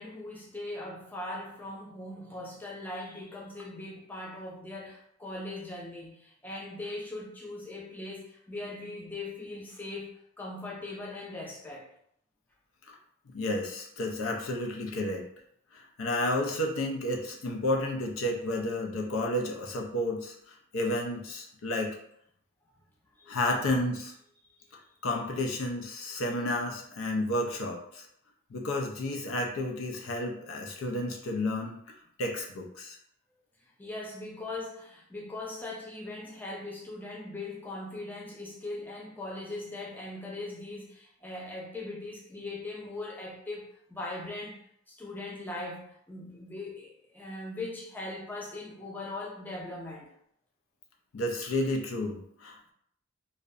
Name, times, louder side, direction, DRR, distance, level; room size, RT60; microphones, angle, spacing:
voice 1, 0.0-11.9 23.1-23.4 33.6-44.6 44.9-50.2, left 2 dB, 10° left, -3 dB, 0.4 m, -40 dB
voice 2, 13.3-15.2 15.7-20.3 20.7-22.0 23.3-24.1 25.0-28.1 28.5-31.8 32.2-33.0 51.1-52.7, left 1 dB, 80° left, 1 dB, 0.5 m, -31 dB
2.6 x 2.0 x 2.4 m, 0.70 s
head